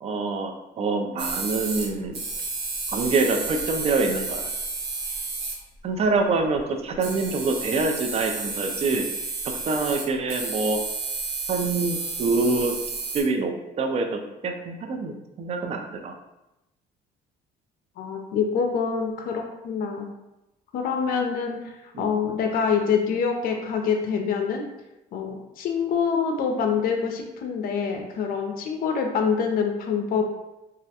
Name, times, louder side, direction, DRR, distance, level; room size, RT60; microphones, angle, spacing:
voice 1, 0.0-2.2 2.9-4.4 5.8-9.1 9.7-10.8 11.5-12.7 13.1-16.1 21.9-22.1, right 3 dB, 40° right, 4 dB, 0.4 m, -25 dB
sound 1, 1.2-1.9 2.1-5.6 6.6-6.7 6.9-13.2, right 3 dB, 90° right, 0.6 m, -31 dB
voice 2, 18.0-20.1 20.7-24.6 25.1-30.2, left 6 dB, 60° left, 3 dB, 0.4 m, -25 dB
2.3 x 2.1 x 2.7 m, 0.95 s
cardioid pair, 110°, 17 cm